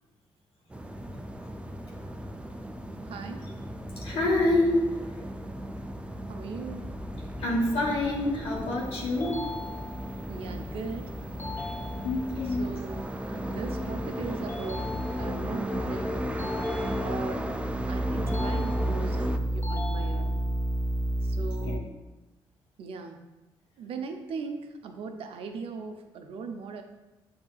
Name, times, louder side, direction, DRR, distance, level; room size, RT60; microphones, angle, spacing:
sound 1, 0.7-19.4, equal, 10° right, 0.4 m, -35 dB
voice 1, 3.1-3.4 6.3-6.8 10.3-11.1 12.6-14.9 15.2-16.2 17.0-17.5 17.9-20.4 21.2-22.0 22.8-23.2 23.8-26.8, right 4 dB, 65° right, 6 dB, 0.5 m, -39 dB
sound 2, 3.9-21.8, right 1 dB, 5° left, 1.2 m, -35 dB
voice 2, 4.0-4.8 7.4-9.4 12.0-12.6 21.6-21.8, left 2 dB, 65° left, -5 dB, 1.2 m, -26 dB
sound 3, 9.2-10.2 11.4-12.4 14.5-15.5 16.4-17.5 18.3-19.2 19.6-20.6, left 3 dB, 25° left, 0.7 m, -40 dB
6.8 x 2.8 x 2.3 m, 1.1 s
supercardioid pair, 60°, 10 cm